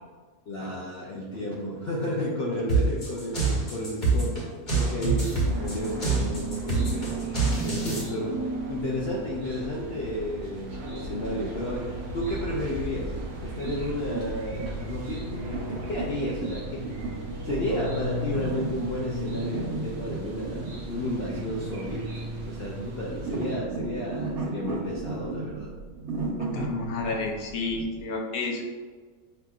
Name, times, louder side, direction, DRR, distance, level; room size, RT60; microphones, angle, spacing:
voice 1, 0.5-4.4 4.7-5.3 5.6-7.2 7.6-8.4 8.7-11.9 12.1-13.1 13.4-15.4 15.7-16.8 17.4-22.0 22.5-25.7, left 1 dB, 60° left, -5 dB, 0.7 m, -32 dB
sound 1, 2.7-8.0, right 3 dB, 35° left, 1.2 m, -26 dB
sound 2, 5.0-23.6, right 1 dB, 55° right, 0.8 m, -36 dB
sound 3, 12.5-28.0, right 3 dB, 75° right, 1.2 m, -36 dB
voice 2, 26.4-28.6, left 3 dB, 80° left, 0 dB, 1.2 m, -30 dB
5.9 x 2.9 x 2.4 m, 1.5 s
omnidirectional pair, 1.5 m